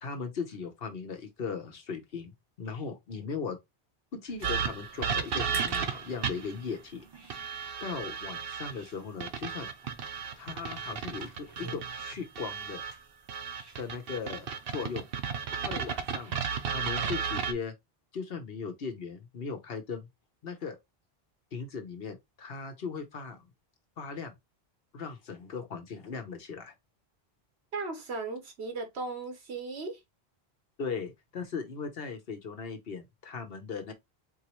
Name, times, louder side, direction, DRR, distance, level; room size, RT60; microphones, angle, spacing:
voice 1, 0.0-2.3 2.6-3.6 4.1-7.0 7.4-7.5 7.8-9.7 10.4-12.8 13.8-15.0 15.6-17.7 18.1-20.1 20.4-20.8 21.5-23.4 24.0-24.3 24.9-26.7 30.8-33.9, left 5 dB, 65° left, 1.2 m, -38 dB
sound 1, 4.3-13.9, right 3 dB, 25° right, 0.7 m, -50 dB
sound 2, 4.4-6.6 7.3-8.7 9.2-12.9 13.3-17.5, right 7 dB, 65° right, 0.9 m, -33 dB
voice 2, 27.7-30.0, right 3 dB, 90° right, 1.4 m, -36 dB
4.5 x 3.0 x 3.0 m
omnidirectional pair, 1.1 m